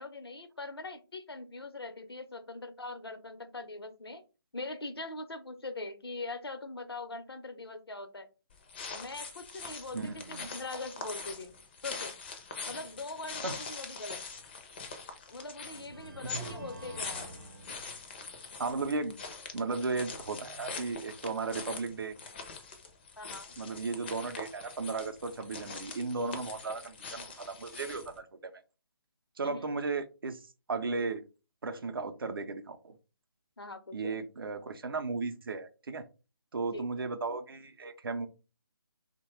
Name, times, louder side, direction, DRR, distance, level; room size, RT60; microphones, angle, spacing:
voice 1, 0.0-4.2 4.5-8.3 8.9-11.5 11.8-12.1 12.7-14.2 15.3-17.3 23.2-23.5 29.4-29.9 33.6-34.1 36.7-37.1, left 3 dB, 85° left, 8 dB, 0.6 m, -42 dB
sound 1, 8.5-28.2, left 4 dB, 25° left, 0.4 m, -43 dB
voice 2, 9.9-10.5 13.4-13.5 16.3-16.7 18.6-19.2 19.5-22.2 23.6-28.5 29.4-31.2 31.6-33.0 33.9-36.1 36.5-38.3, right 4 dB, 70° right, 9 dB, 0.5 m, -35 dB
sound 2, 14.8-15.0 15.7-18.5, right 1 dB, 45° right, 0.8 m, -49 dB
2.8 x 2.1 x 3.1 m, 0.31 s
figure-of-eight pair, 150°, 13 cm